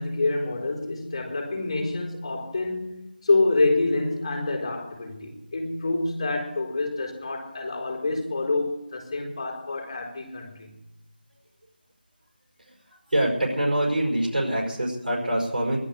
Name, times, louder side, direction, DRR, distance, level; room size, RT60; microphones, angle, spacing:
voice 1, 0.0-10.7, left 3 dB, 25° left, 4.5 m, -27 dB
voice 2, 13.1-15.8, right 1 dB, 55° right, 5.3 m, -24 dB
16.0 x 12.0 x 6.5 m
figure-of-eight pair, 170°, 5 cm